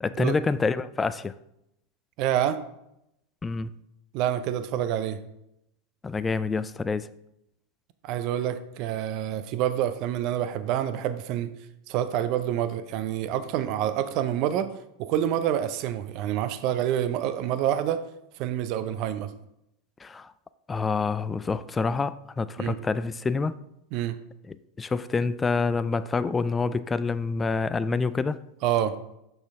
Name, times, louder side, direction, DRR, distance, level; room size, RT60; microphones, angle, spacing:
voice 1, 0.0-1.3 3.4-3.7 6.0-7.1 20.0-20.3 20.7-23.6 24.5-28.4, left 4 dB, 20° left, 0.3 m, -27 dB
voice 2, 2.2-2.6 4.1-5.2 8.0-11.5 11.9-14.7 15.0-18.0 18.4-19.3 22.6-22.8 23.9-24.2 28.6-28.9, right 11 dB, 50° right, 0.5 m, -27 dB
6.3 x 6.1 x 3.6 m
hypercardioid pair, 90°, 0 cm